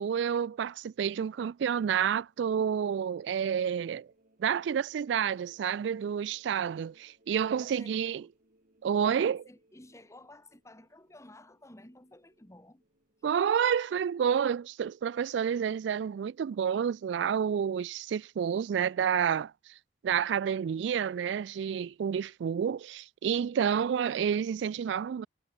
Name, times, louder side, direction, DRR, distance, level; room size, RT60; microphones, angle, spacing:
voice 1, 0.0-4.1 4.4-8.3 8.8-9.4 13.2-19.5 20.0-25.3, right 8 dB, 70° right, 0.3 m, -29 dB
sound 1, 1.8-13.3, right 1 dB, 50° right, 7.2 m, -69 dB
voice 2, 7.6-8.3 9.1-12.8, left 1 dB, 15° left, 1.7 m, -54 dB
head